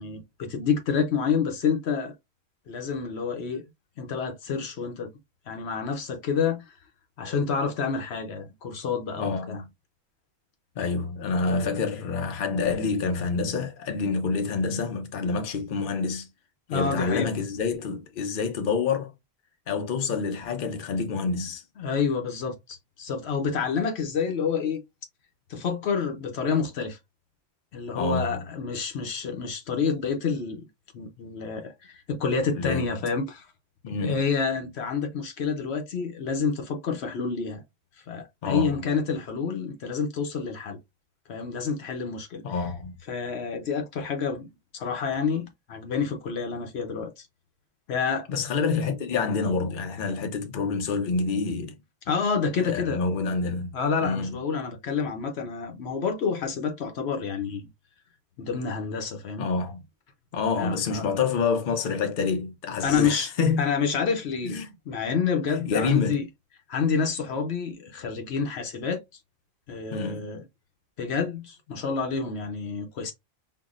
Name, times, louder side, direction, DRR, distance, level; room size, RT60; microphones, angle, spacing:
voice 1, 0.0-2.1 2.7-3.6 4.0-5.1 5.5-6.8 7.2-9.6 11.5-11.7 16.7-17.3 21.8-24.8 25.5-27.0 27.7-30.6 30.9-33.5 34.0-37.6 38.0-40.8 41.3-42.4 43.1-44.5 44.7-47.2 47.9-48.3 52.1-53.0 53.7-57.7 58.4-59.5 60.6-61.2 62.8-63.3 63.6-64.6 64.9-66.2 66.7-69.0 69.7-70.4 71.0-73.1, left 5 dB, 75° left, 1.0 m, -28 dB
voice 2, 9.2-9.7 10.8-16.3 16.7-19.1 19.7-21.6 27.9-28.4 32.5-32.8 33.8-34.3 38.4-38.9 42.4-42.9 48.3-51.7 52.6-53.7 54.0-54.4 59.4-59.8 60.3-63.7 64.4-64.7 65.6-66.2 69.9-70.3, left 4 dB, 55° left, 0.9 m, -27 dB
5.6 x 2.0 x 2.4 m
omnidirectional pair, 1.1 m